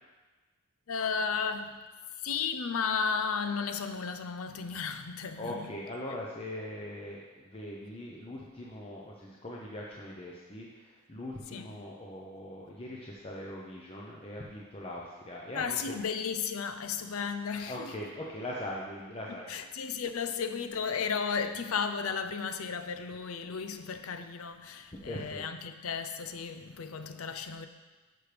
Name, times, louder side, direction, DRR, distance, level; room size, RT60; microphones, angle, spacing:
voice 1, 0.9-1.8 2.2-5.7 11.5-11.8 15.5-17.9 19.3-27.7, left 6 dB, 80° left, 0.6 m, -34 dB
voice 2, 5.4-16.0 17.7-19.5 25.0-25.4, left 1 dB, 30° left, 0.8 m, -41 dB
10.5 x 6.6 x 3.4 m
head